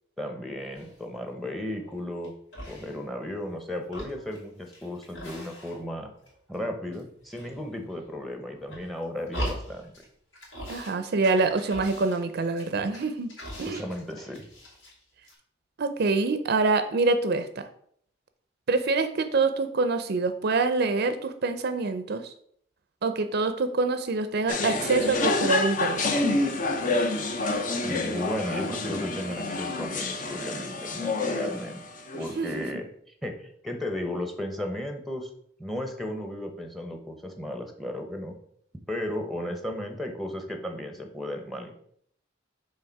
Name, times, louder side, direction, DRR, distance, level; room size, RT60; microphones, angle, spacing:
voice 1, 0.2-2.3 2.7-6.1 6.5-9.8 13.7-14.5 27.8-31.8 32.2-32.9 33.2-35.3 35.6-38.4 38.9-41.7, left 1 dB, ahead, 5 dB, 0.8 m, -34 dB
sound 1, 0.7-1.2 1.7-2.3 2.5-3.5 3.8-6.0 6.2-7.0 7.3-8.0 8.5-10.0 10.3-10.9 11.2-15.0 15.2-15.3, equal, 70° left, 2.6 m, -40 dB
voice 2, 10.7-13.3 13.6-13.8 15.8-17.6 18.7-22.3 23.0-26.1 32.1-32.6, right 3 dB, 55° right, 10 dB, 0.5 m, -26 dB
sound 2, 24.5-32.7, left 2 dB, 45° left, 0.7 m, -28 dB
6.3 x 3.7 x 4.6 m, 0.65 s
head